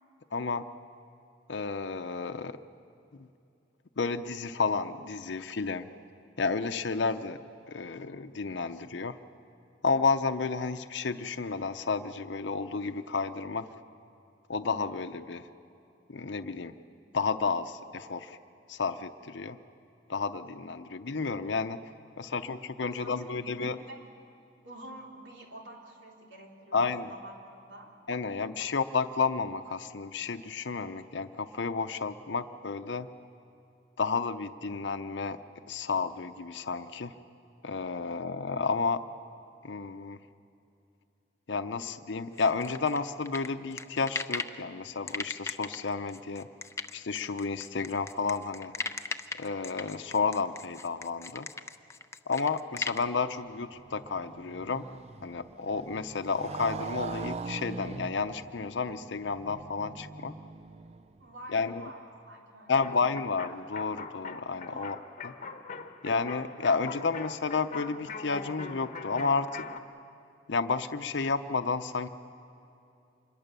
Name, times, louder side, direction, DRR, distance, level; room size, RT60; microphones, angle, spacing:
voice 1, 0.3-0.7 1.5-2.6 4.0-5.9 6.4-7.4 7.7-9.2 9.8-13.7 14.5-15.5 16.1-16.8 17.1-18.4 18.7-19.6 20.1-21.8 22.2-23.8 26.7-27.1 28.1-33.1 34.0-35.4 35.7-37.1 37.6-39.0 39.6-40.2 41.5-46.5 46.9-48.7 49.4-51.5 52.3-54.9 55.2-60.3 61.5-61.9 62.7-65.0 66.0-69.6 70.5-72.1, left 4 dB, 70° left, 8 dB, 0.7 m, -31 dB
voice 2, 22.8-24.1 24.6-27.9 61.2-63.0 64.7-64.9, right 1 dB, 75° right, 0 dB, 3.6 m, -48 dB
sound 1, 42.4-44.6 45.1-53.0, left 3 dB, 15° left, 0.5 m, -37 dB
Motorcycle, 53.3-61.4, right 4 dB, 35° right, 0.4 m, -42 dB
sound 2, 62.8-69.8, left 4 dB, 40° left, 1.0 m, -42 dB
26.0 x 21.5 x 6.8 m, 2.7 s
head